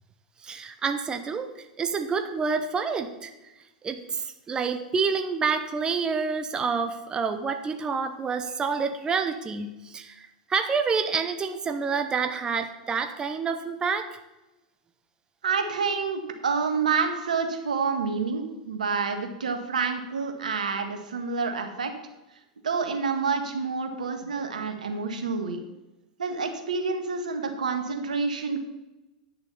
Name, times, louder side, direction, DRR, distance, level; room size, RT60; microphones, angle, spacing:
voice 1, 0.4-3.3 3.8-14.2, right 5 dB, 20° right, 7 dB, 1.0 m, -28 dB
voice 2, 15.4-21.9 22.6-25.6 26.2-28.6, right 5 dB, 80° right, 5 dB, 1.7 m, -28 dB
10.5 x 6.8 x 7.1 m, 1.0 s
hypercardioid pair, 100°, 4 cm